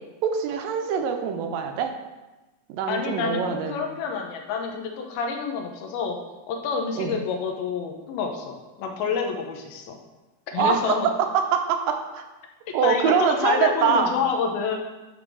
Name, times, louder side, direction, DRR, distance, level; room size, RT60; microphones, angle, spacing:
voice 1, 0.2-1.9 2.7-3.8 7.0-7.2 10.6-12.3 12.7-14.1, right 7 dB, 75° right, 5 dB, 2.3 m, -24 dB
voice 2, 2.9-6.2 6.5-10.0 10.5-11.1 12.7-14.8, left 5 dB, 80° left, 2 dB, 2.8 m, -28 dB
10.0 x 3.6 x 6.1 m, 1.1 s
omnidirectional pair, 4.3 m